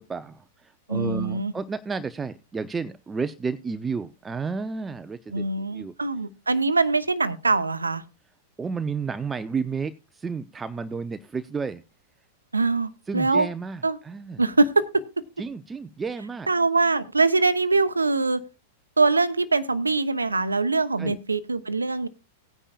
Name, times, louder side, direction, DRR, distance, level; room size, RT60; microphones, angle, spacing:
voice 1, 0.0-5.9 8.6-11.8 13.1-14.4 15.4-16.5 21.0-21.2, right 5 dB, 15° right, 11 dB, 0.7 m, -32 dB
voice 2, 0.9-1.5 5.3-8.0 12.5-13.5 13.8-14.0 14.4-15.0 16.5-18.4 19.0-22.1, right 3 dB, 85° right, 12 dB, 0.9 m, -23 dB
18.5 x 9.9 x 2.5 m, 0.27 s
figure-of-eight pair, 95°, 0 cm